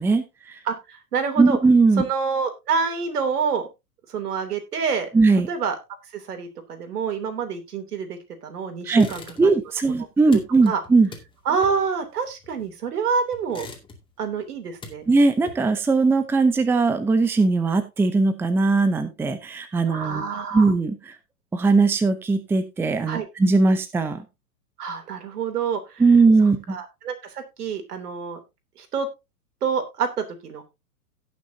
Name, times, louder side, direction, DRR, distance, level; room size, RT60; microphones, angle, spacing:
voice 1, 0.0-0.6 1.4-2.0 5.1-5.5 8.8-9.1 9.4-11.1 15.1-20.2 20.5-21.1 21.5-24.2 26.0-26.8, right 3 dB, 5° right, 10 dB, 0.7 m, -19 dB
voice 2, 0.7-1.6 2.0-3.7 4.1-5.1 5.5-5.8 6.1-9.6 10.0-10.8 11.4-13.7 14.2-15.0 19.9-20.7 23.1-23.2 24.8-26.0 26.7-28.4 28.8-29.1 29.6-30.6, right 5 dB, 75° right, 7 dB, 3.2 m, -27 dB
sound 1, 8.9-9.7 10.0-12.9 13.3-14.2 14.6-15.9, left 3 dB, 10° left, 2.4 m, -43 dB
17.5 x 6.3 x 2.8 m, 0.24 s
hypercardioid pair, 125°, 46 cm